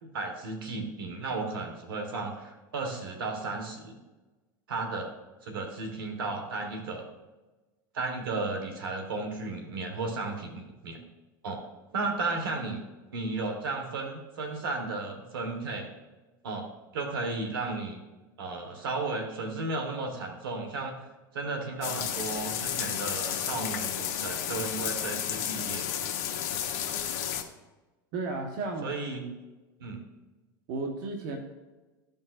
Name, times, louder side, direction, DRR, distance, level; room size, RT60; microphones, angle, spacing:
voice 1, 0.0-4.0 4.7-5.1 5.4-7.1 7.9-11.0 11.4-11.6 11.9-12.8 13.1-15.9 16.4-18.0 18.4-21.0 21.3-26.0 26.6-26.7 28.8-29.2 29.8-30.0, right 3 dB, 80° right, 4 dB, 1.5 m, -34 dB
sound 1, 21.8-27.4, left 9 dB, 60° left, 1.0 m, -32 dB
voice 2, 28.1-28.9 30.7-31.4, right 3 dB, 60° right, 2 dB, 1.3 m, -33 dB
14.0 x 5.3 x 2.6 m, 1.2 s
hypercardioid pair, 95°, 12 cm